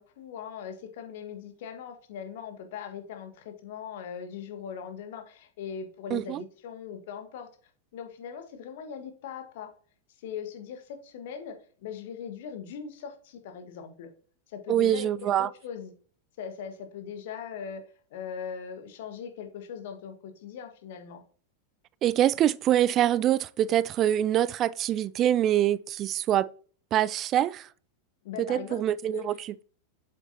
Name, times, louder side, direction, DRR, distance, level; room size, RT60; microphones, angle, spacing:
voice 1, 0.0-7.5 7.9-9.7 10.2-14.1 14.5-15.9 16.4-17.8 18.1-21.2 28.2-28.8 29.1-29.3, left 7 dB, 55° left, 1.5 m, -40 dB
voice 2, 6.1-6.4 14.7-15.5 22.0-26.5 26.9-27.7 28.4-29.3, right 11 dB, 30° right, 0.3 m, -24 dB
7.7 x 7.4 x 2.8 m
figure-of-eight pair, 90°, 0 cm